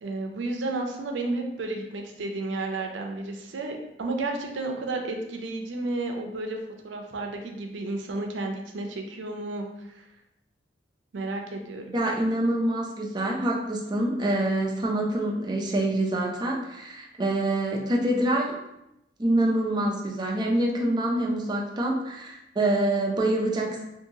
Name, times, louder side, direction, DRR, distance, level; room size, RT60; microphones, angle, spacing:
voice 1, 0.0-6.6 6.8-10.0 11.1-11.9, right 2 dB, 80° right, 3 dB, 0.4 m, -32 dB
voice 2, 11.9-18.5 19.2-23.8, right 1 dB, 25° right, -1 dB, 0.4 m, -26 dB
2.7 x 2.6 x 2.7 m, 0.86 s
head